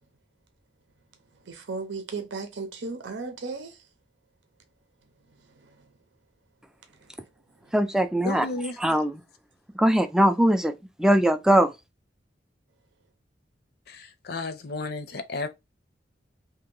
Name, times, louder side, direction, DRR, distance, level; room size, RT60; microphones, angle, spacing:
voice 1, 1.5-3.7, right 4 dB, 85° right, 0.7 m, -35 dB
voice 2, 7.7-8.5 8.8-9.2 9.7-10.7 11.0-11.7, right 1 dB, 5° right, 0.3 m, -21 dB
voice 3, 8.2-8.8 13.9-15.5, left 2 dB, 60° left, 0.6 m, -33 dB
2.8 x 2.8 x 3.7 m
head